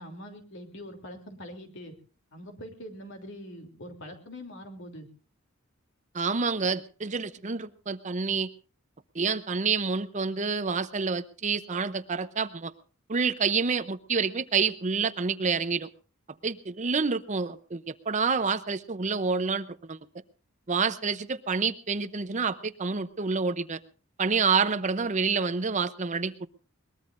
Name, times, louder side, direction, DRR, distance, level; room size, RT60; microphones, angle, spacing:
voice 1, 0.0-1.9 2.3-5.1, equal, 60° left, 5 dB, 3.2 m, -43 dB
voice 2, 6.1-8.5 9.1-12.7 13.1-15.9 16.4-20.0 20.7-23.8 24.2-26.5, right 5 dB, 35° right, 13 dB, 0.7 m, -28 dB
22.0 x 21.0 x 2.6 m, 0.37 s
head